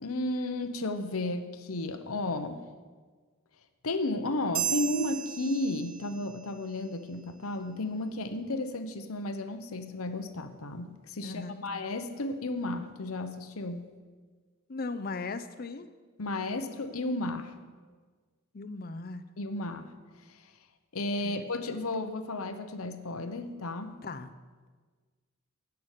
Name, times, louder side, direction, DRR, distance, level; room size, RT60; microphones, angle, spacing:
voice 1, 0.0-2.6 3.8-13.8 16.2-17.5 19.4-19.9 20.3-20.4 20.9-24.0, left 2 dB, 80° left, 8 dB, 0.9 m, -33 dB
sound 1, 4.5-6.4, right 10 dB, 80° right, 1.0 m, -34 dB
voice 2, 11.2-11.6 14.7-15.9 18.5-19.2 21.2-21.5 24.0-24.3, left 3 dB, 45° left, 12 dB, 0.6 m, -38 dB
16.5 x 6.0 x 6.6 m, 1.5 s
head